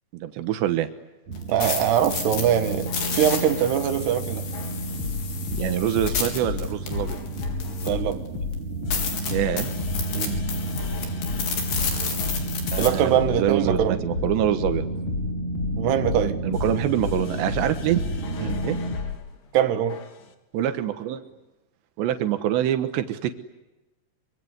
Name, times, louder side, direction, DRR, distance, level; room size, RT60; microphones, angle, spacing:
voice 1, 0.1-0.9 5.5-7.2 9.3-9.7 12.7-14.9 16.4-18.0 18.6-18.8 20.5-21.3 22.0-23.3, right 11 dB, 90° right, 3.5 m, -25 dB
sound 1, 1.3-8.1 8.5-8.6 8.9-12.9, left 5 dB, 70° left, 6.1 m, -31 dB
sound 2, 1.3-19.0, right 2 dB, 45° right, 3.6 m, -32 dB
voice 2, 1.5-4.4 7.8-8.2 10.1-10.4 12.8-14.0 15.8-16.4 18.4-18.6 19.5-20.0, right 10 dB, 75° right, 3.6 m, -23 dB
sound 3, 2.9-3.9 4.5-19.2 19.9-20.3, left 6 dB, 50° left, 3.2 m, -33 dB
25.0 x 24.5 x 9.7 m
omnidirectional pair, 4.9 m